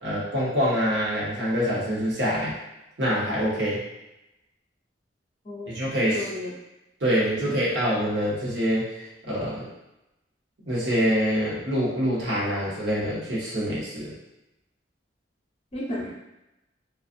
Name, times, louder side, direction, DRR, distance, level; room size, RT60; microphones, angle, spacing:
voice 1, 0.0-2.5 3.0-3.8 5.7-6.2 7.0-9.0 9.3-9.7 10.6-14.1, equal, 70° right, -7 dB, 1.0 m, -25 dB
voice 2, 5.4-5.8 6.1-6.5 7.4-7.6 15.7-16.1, left 1 dB, 35° left, -5 dB, 0.7 m, -33 dB
2.5 x 2.3 x 2.5 m, 0.93 s
head